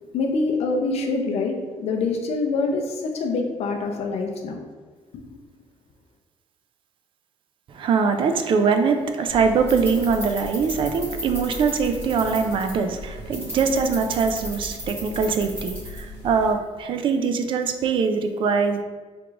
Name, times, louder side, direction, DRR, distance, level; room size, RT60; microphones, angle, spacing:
voice 1, 0.1-4.6 5.1-5.2, left 3 dB, 60° left, 2 dB, 0.5 m, -25 dB
voice 2, 7.7-18.8, right 5 dB, 45° right, 7 dB, 0.3 m, -22 dB
sound 1, 9.3-16.5, equal, 20° right, 1.4 m, -35 dB
4.7 x 3.6 x 2.4 m, 1.4 s
cardioid pair, 165°, 12 cm